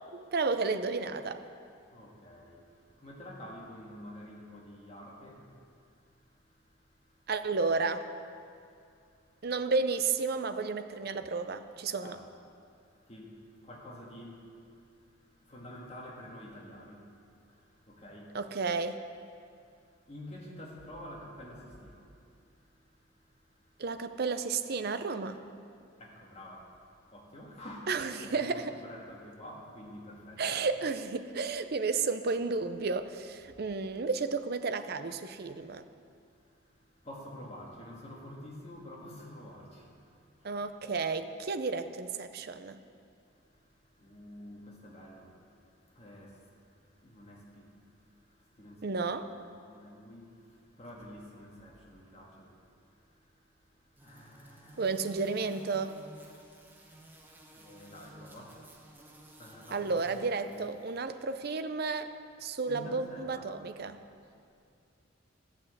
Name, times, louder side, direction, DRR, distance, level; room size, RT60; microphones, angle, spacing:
voice 1, 0.1-1.4 7.3-8.0 9.4-12.2 18.3-19.0 23.8-25.4 27.9-28.7 30.4-35.8 40.4-42.8 48.8-49.3 54.8-56.0 59.7-62.1 62.4-64.0, right 4 dB, 50° right, 10 dB, 0.6 m, -32 dB
voice 2, 1.9-7.3 8.6-9.5 12.0-12.3 12.7-18.4 19.5-23.8 25.9-30.6 36.3-40.6 43.2-48.9 49.5-54.9 56.5-60.0 60.5-60.7 62.7-63.6, left 1 dB, 30° left, -2 dB, 1.9 m, -50 dB
sound 1, 54.0-61.1, right 1 dB, 10° right, 1.0 m, -54 dB
14.0 x 6.2 x 7.9 m, 2.4 s
head